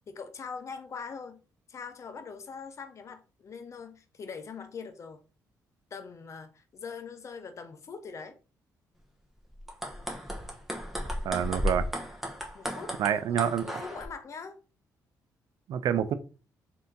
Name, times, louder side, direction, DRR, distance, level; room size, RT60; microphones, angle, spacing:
voice 1, 0.1-1.4 1.7-5.2 5.9-8.4 12.5-14.6, left 5 dB, 45° left, 0.7 m, -42 dB
sound 1, 9.6-14.1, equal, 5° right, 1.0 m, -34 dB
voice 2, 11.2-11.9 13.0-13.7 15.7-16.1, right 9 dB, 70° right, 0.5 m, -27 dB
3.4 x 2.8 x 3.9 m
cardioid pair, 95°, 7 cm